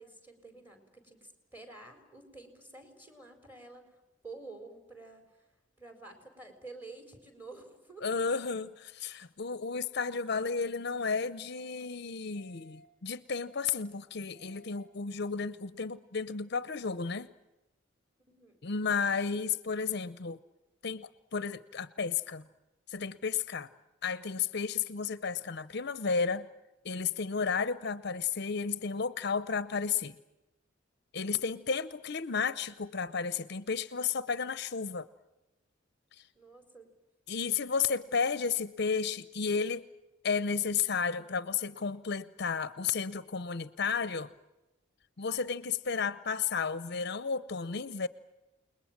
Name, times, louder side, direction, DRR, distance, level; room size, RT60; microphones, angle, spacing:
voice 1, 0.0-5.4 5.8-8.1 18.3-18.6 31.2-31.6 36.3-36.9, right 3 dB, 10° right, 4.5 m, -50 dB
voice 2, 8.0-17.3 18.6-20.4 20.8-22.4 22.9-23.7 24.0-26.5 26.8-30.2 31.1-35.1 37.3-39.9 40.2-44.3 45.2-48.1, left 5 dB, 60° left, 0.8 m, -33 dB
sound 1, 10.4-10.9 11.4-11.9 12.4-12.9 13.4-13.9 14.4-14.9, left 2 dB, 55° right, 7.6 m, -58 dB
29.0 x 21.0 x 7.5 m
head